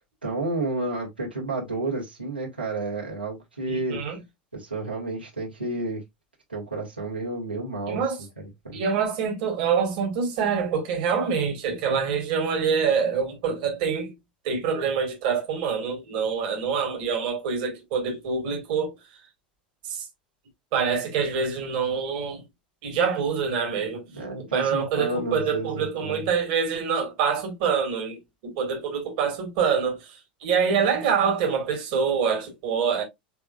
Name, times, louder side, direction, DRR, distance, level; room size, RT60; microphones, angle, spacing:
voice 1, 0.2-4.0 4.5-6.0 6.5-8.0 8.6-8.8 24.1-26.3, right 2 dB, 85° right, 1.8 m, -31 dB
voice 2, 3.7-4.2 7.9-8.2 8.7-14.1 14.4-18.9 19.8-20.1 20.7-22.4 22.8-24.0 24.5-33.0, right 6 dB, 55° right, 1.7 m, -25 dB
5.9 x 3.5 x 2.4 m
figure-of-eight pair, 80°, 5 cm